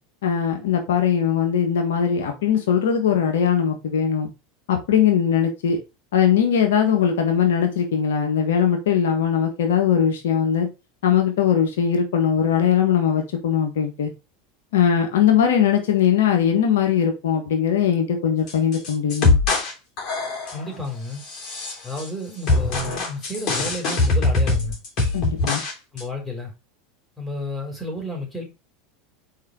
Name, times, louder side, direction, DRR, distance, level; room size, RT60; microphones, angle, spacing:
voice 1, 0.2-4.3 4.7-5.8 6.1-10.7 11.0-14.1 14.7-19.4 25.1-25.6, left 8 dB, 75° left, 1.6 m, -20 dB
sound 1, 18.5-19.7 20.0-20.7 21.2-22.1 22.5-25.7 26.0-26.1, left 3 dB, 45° left, 3.2 m, -22 dB
voice 2, 20.5-21.2 21.8-24.8 25.9-26.5 27.2-28.4, left 2 dB, ahead, 3.7 m, -31 dB
4.9 x 4.7 x 4.5 m
hypercardioid pair, 90°, 0 cm